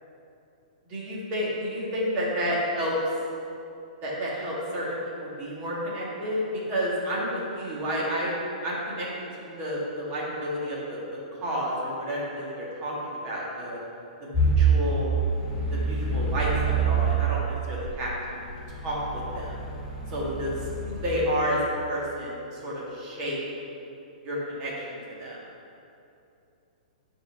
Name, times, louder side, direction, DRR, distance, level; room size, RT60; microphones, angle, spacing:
voice 1, 0.9-2.9 4.0-6.4 6.7-8.3 8.6-9.1 9.4-11.0 11.4-13.8 14.2-15.2 15.7-18.5 18.8-19.6 20.1-20.5 20.8-21.6 21.9-23.4 24.2-25.4, equal, 25° right, -6 dB, 1.6 m, -30 dB
sound 1, 14.3-17.3 17.9-21.1, right 4 dB, 15° left, 1.1 m, -26 dB
10.5 x 4.0 x 5.5 m, 2.7 s
hypercardioid pair, 175°, 4 cm